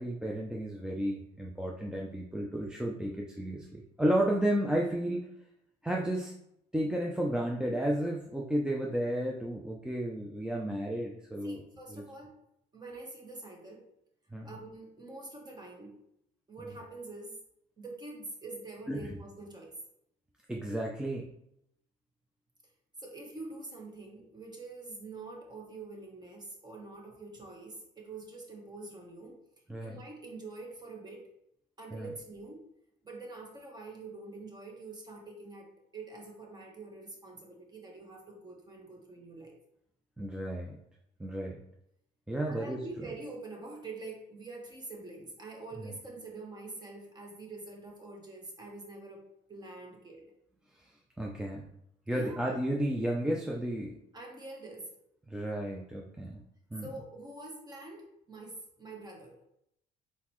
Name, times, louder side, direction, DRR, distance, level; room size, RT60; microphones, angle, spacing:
voice 1, 0.0-5.3 5.8-6.3 6.7-11.6 11.9-12.0 14.3-14.5 18.9-19.2 20.5-21.3 29.7-30.0 31.9-32.1 40.2-40.8 41.2-41.6 42.3-42.8 45.8-45.9 51.2-51.7 52.1-54.0 55.3-56.4 56.7-56.9, right 1 dB, 5° right, -1 dB, 0.5 m, -32 dB
voice 2, 11.4-12.3 12.7-13.8 14.4-15.9 16.5-17.4 17.8-19.8 23.0-29.4 29.8-31.3 31.8-32.6 33.0-39.6 42.5-50.3 52.1-52.4 54.1-54.9 56.8-59.4, right 2 dB, 25° right, 0 dB, 1.2 m, -45 dB
4.2 x 3.9 x 3.1 m, 0.78 s
cardioid pair, 110°, 17 cm